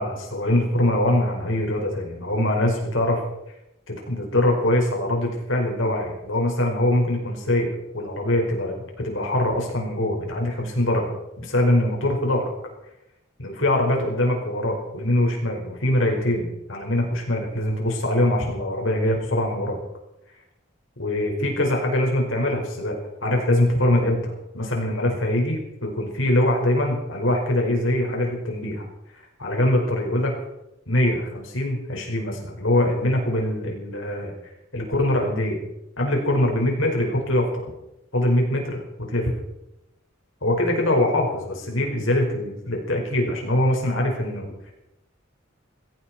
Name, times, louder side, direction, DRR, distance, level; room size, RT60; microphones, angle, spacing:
voice 1, 0.0-3.2 3.9-12.5 13.4-19.8 21.0-23.0 23.2-28.8 29.4-30.4 30.9-34.3 34.7-35.6 36.0-37.7 38.1-38.8 39.1-39.3 40.4-44.5, left 1 dB, 85° left, 1 dB, 5.1 m, -23 dB
18.5 x 17.5 x 4.4 m, 0.88 s
head